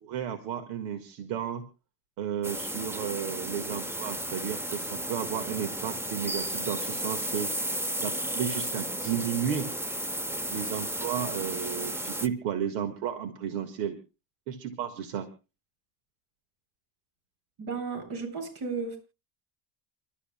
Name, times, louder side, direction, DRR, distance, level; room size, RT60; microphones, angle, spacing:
voice 1, 0.0-1.6 2.2-7.5 8.0-9.7 10.5-14.0 14.5-15.3, right 9 dB, 90° right, 7 dB, 1.8 m, -33 dB
sound 1, 2.4-12.3, right 1 dB, 5° right, 0.8 m, -33 dB
voice 2, 17.6-19.0, right 4 dB, 60° right, 5 dB, 7.8 m, -34 dB
29.5 x 12.5 x 2.2 m, 0.31 s
cardioid pair, 120°, 42 cm